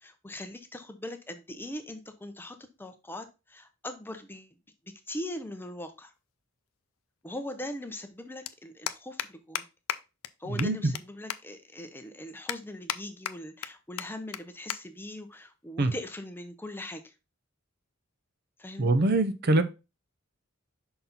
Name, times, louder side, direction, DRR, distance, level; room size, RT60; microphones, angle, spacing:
voice 1, 0.0-4.6 5.1-6.1 7.2-9.7 10.4-17.1 18.6-19.0, left 1 dB, 10° left, 0.6 m, -41 dB
sound 1, 6.2-6.3 7.7-7.8 8.0-8.2 8.5-8.6 8.9-9.3 9.6-9.7 9.9-10.0 10.2-10.3 10.6-11.0 11.3-11.4 11.9-12.0 12.5-13.0 13.3-13.7 14.0-14.1 14.3-14.4 14.7-14.8 15.1-15.3 16.1-16.4, left 10 dB, 75° left, 0.5 m, -33 dB
voice 2, 10.5-10.9 15.8-15.9 18.8-19.6, right 2 dB, 50° right, 0.6 m, -24 dB
5.8 x 4.1 x 4.0 m
head